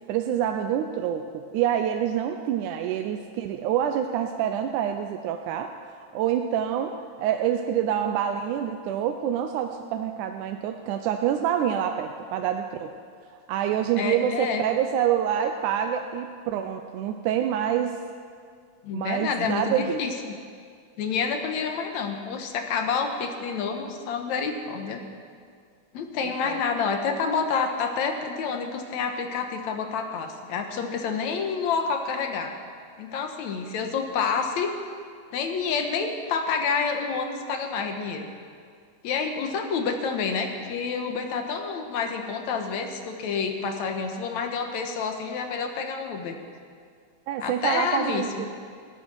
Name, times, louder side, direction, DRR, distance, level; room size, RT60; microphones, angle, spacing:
voice 1, 0.0-5.7 6.1-6.9 7.2-12.9 13.5-18.0 18.9-20.0 26.2-26.6 47.3-48.5, right 9 dB, 85° right, 5 dB, 2.1 m, -26 dB
voice 2, 14.0-14.6 18.8-19.7 20.0-20.1 21.0-25.0 25.9-32.5 33.0-34.7 35.3-38.3 39.0-46.4 47.4-48.4, left 5 dB, 70° left, 5 dB, 2.4 m, -28 dB
16.5 x 12.5 x 6.2 m, 2.1 s
omnidirectional pair, 3.5 m